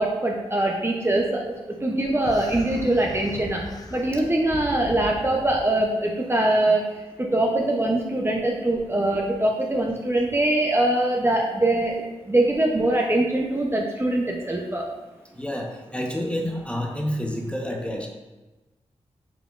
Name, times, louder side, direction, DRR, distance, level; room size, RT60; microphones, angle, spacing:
voice 1, 0.0-1.4 1.8-3.6 3.9-6.9 7.2-11.9 12.3-14.8, right 1 dB, 20° right, -1 dB, 0.7 m, -22 dB
sound 1, 2.2-5.7, left 2 dB, 30° left, 0.6 m, -38 dB
voice 2, 15.4-15.7 15.9-18.1, equal, 10° left, 0 dB, 0.9 m, -28 dB
5.9 x 3.4 x 2.5 m, 1.1 s
supercardioid pair, 45°, 12 cm